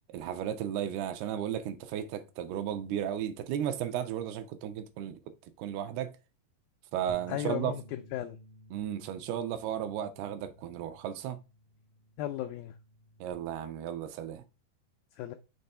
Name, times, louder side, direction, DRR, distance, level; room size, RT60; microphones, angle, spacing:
voice 1, 0.1-5.2 5.6-6.2 6.9-7.7 8.7-11.4 13.2-14.4, right 10 dB, 80° right, 2.6 m, -34 dB
Bass guitar, 7.1-13.3, right 1 dB, 60° right, 1.2 m, -55 dB
voice 2, 7.3-8.4 12.2-12.8 15.2-15.3, left 12 dB, 85° left, 2.0 m, -35 dB
6.7 x 3.3 x 5.4 m
omnidirectional pair, 4.6 m